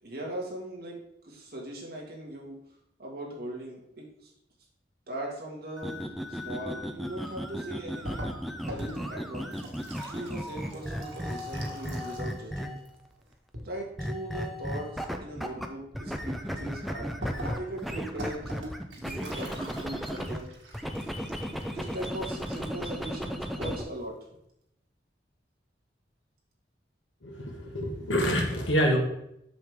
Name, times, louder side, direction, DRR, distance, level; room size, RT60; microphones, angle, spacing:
voice 1, 0.0-2.6 3.0-4.3 5.1-6.0 6.3-8.3 8.7-9.6 10.1-12.8 13.6-17.1 17.5-18.6 19.0-20.5 21.7-24.3, right 1 dB, 55° right, -2 dB, 2.1 m, -39 dB
sound 1, 5.8-13.0 14.0-15.7 15.9-20.4 20.7-23.8, equal, ahead, 0.5 m, -35 dB
sound 2, 8.0-12.5 12.8-13.7 17.2-22.9 23.3-23.4 23.6-24.1, equal, 90° right, 1.9 m, -41 dB
voice 2, 27.2-29.0, equal, 85° left, 2 dB, 1.6 m, -26 dB
7.6 x 6.4 x 3.6 m, 0.78 s
head